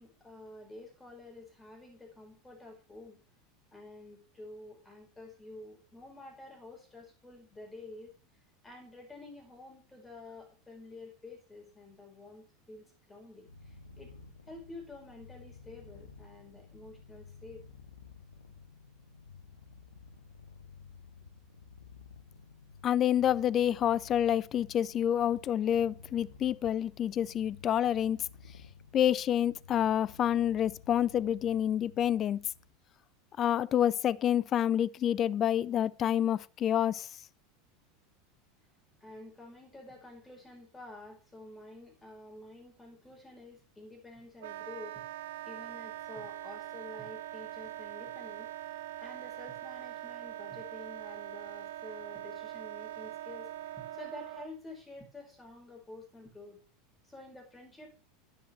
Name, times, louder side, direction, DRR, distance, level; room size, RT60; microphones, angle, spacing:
voice 1, 0.0-3.2 3.7-8.1 8.6-14.1 14.5-17.6 39.0-56.6 57.0-57.9, left 2 dB, 10° left, 5.2 m, -50 dB
Purr, 13.4-32.8, left 5 dB, 80° left, 1.3 m, -54 dB
voice 2, 22.8-28.2 28.9-32.4 33.4-37.1, left 10 dB, 35° left, 0.4 m, -28 dB
Wind instrument woodwind instrument, 44.4-54.5, right 13 dB, 60° right, 0.8 m, -42 dB
11.0 x 10.0 x 3.2 m
figure-of-eight pair, 80°, 0 cm